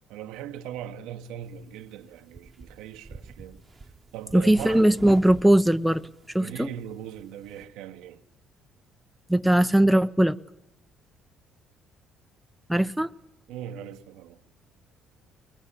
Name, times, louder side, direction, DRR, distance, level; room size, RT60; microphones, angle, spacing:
voice 1, 0.1-3.6 4.1-4.9 6.4-8.2 13.5-14.4, right 10 dB, 80° right, 1.1 m, -39 dB
sound 1, 1.4-7.6, right 3 dB, 30° right, 1.2 m, -47 dB
voice 2, 4.3-6.0 6.3-6.7 9.3-10.4 12.7-13.1, right 1 dB, 5° right, 0.8 m, -20 dB
22.5 x 20.0 x 9.9 m
supercardioid pair, 65°, 0 cm